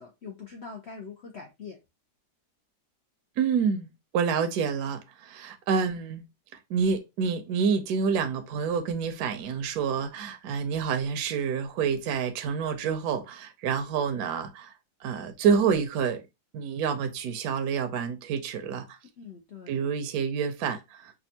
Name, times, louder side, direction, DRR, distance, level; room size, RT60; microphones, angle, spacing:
voice 1, 0.0-1.8 19.2-19.9, left 5 dB, 80° left, 0.5 m, -43 dB
voice 2, 3.4-6.2 6.7-14.7 15.0-16.2 16.5-19.0 19.7-21.1, right 6 dB, 70° right, 1.0 m, -28 dB
5.1 x 2.3 x 2.7 m
omnidirectional pair, 2.0 m